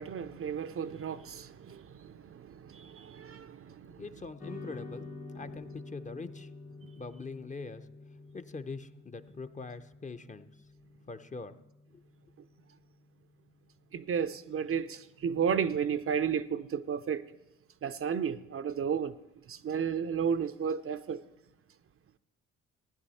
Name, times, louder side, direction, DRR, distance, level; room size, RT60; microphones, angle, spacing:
voice 1, 0.0-4.0 6.8-6.9 13.9-17.2 17.8-19.1 19.5-21.2, right 7 dB, 45° right, 0.6 m, -33 dB
voice 2, 4.0-5.1 5.3-6.5 6.9-7.9 8.3-10.5 11.1-11.5 11.9-12.0, left 4 dB, 25° left, 0.8 m, -43 dB
sound 1, 4.4-12.9, left 3 dB, 85° left, 3.1 m, -48 dB
16.0 x 10.5 x 4.2 m
hypercardioid pair, 55°, 32 cm